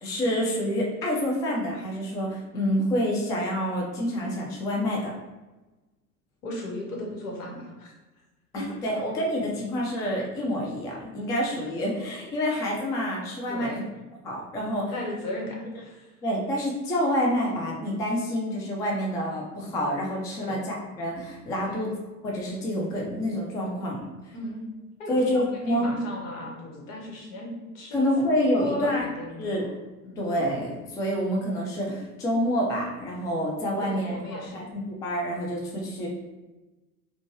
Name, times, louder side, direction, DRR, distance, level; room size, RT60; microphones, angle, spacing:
voice 1, 0.0-5.1 8.5-13.7 14.2-14.9 16.2-21.9 22.2-24.3 25.1-25.9 27.9-29.0 29.4-29.7 30.2-36.1, equal, 10° left, -2 dB, 0.3 m, -28 dB
voice 2, 6.4-7.9 8.5-8.9 13.5-13.8 14.9-16.1 20.4-20.6 21.6-21.9 24.3-24.6 25.0-28.1 28.5-29.7 30.0-30.3 33.8-34.6, left 1 dB, 60° left, -1 dB, 1.3 m, -36 dB
5.0 x 2.3 x 2.9 m, 1.1 s
figure-of-eight pair, 80°, 44 cm